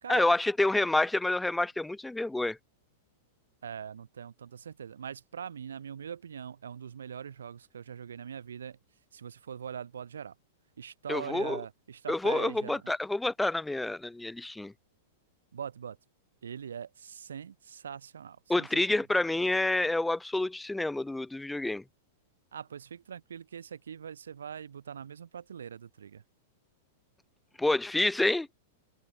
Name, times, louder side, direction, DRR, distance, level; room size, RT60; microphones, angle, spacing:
voice 1, 0.1-2.6 11.1-11.6 12.1-14.7 18.5-21.8 27.6-28.5, left 2 dB, 5° left, 0.6 m, -28 dB
voice 2, 3.6-8.8 9.1-10.3 10.8-12.9 15.5-16.0 16.4-19.0 22.5-26.2, right 8 dB, 80° right, 1.8 m, -42 dB
hypercardioid pair, 110°, 0 cm